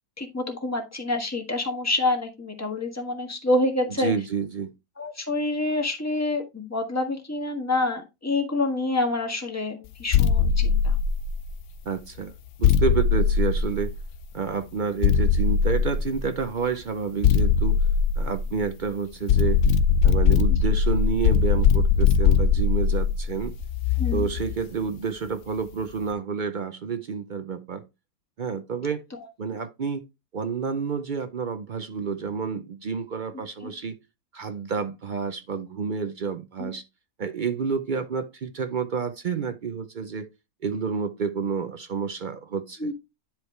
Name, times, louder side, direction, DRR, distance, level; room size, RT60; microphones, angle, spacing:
voice 1, 0.2-4.1 5.0-11.0 24.0-24.3 29.1-29.3 36.6-36.7 42.8-42.9, left 2 dB, 10° left, 1.4 m, -27 dB
voice 2, 4.0-4.7 11.8-12.3 12.6-13.9 14.3-17.8 18.2-19.6 20.0-23.5 24.1-27.9 28.4-29.0 29.4-30.0 30.3-34.0 34.3-36.8 37.2-40.3 40.6-42.9, right 5 dB, 65° right, 0.4 m, -29 dB
sound 1, 10.1-11.6 12.6-14.2 15.0-16.4 17.2-18.8 19.3-24.6, left 6 dB, 65° left, 0.9 m, -21 dB
10.5 x 4.7 x 3.2 m
omnidirectional pair, 1.6 m